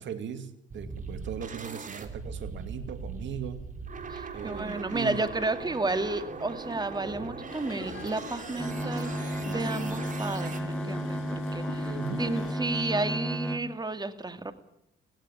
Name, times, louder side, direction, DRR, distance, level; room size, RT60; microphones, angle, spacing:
voice 1, 0.0-3.6 4.3-5.3 11.8-12.2, right 8 dB, 70° right, 10 dB, 2.4 m, -38 dB
sound 1, 0.7-10.6, right 4 dB, 40° right, 3.2 m, -40 dB
voice 2, 4.1-14.5, right 2 dB, 20° right, 10 dB, 2.3 m, -32 dB
sound 2, 7.5-12.5, left 4 dB, 75° left, 7.8 m, -43 dB
sound 3, 8.6-13.6, equal, 5° left, 2.0 m, -33 dB
17.0 x 16.5 x 9.9 m, 0.77 s
cardioid pair, 90°, 20 cm